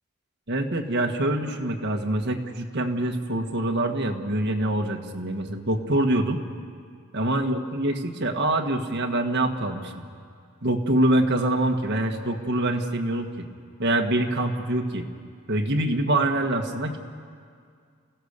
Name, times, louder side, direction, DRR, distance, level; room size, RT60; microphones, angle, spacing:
voice 1, 0.5-6.4 7.1-9.9 10.6-13.3 13.8-15.0 15.5-17.0, right 1 dB, 50° right, 3 dB, 1.6 m, -25 dB
29.5 x 16.0 x 6.7 m, 2.2 s
head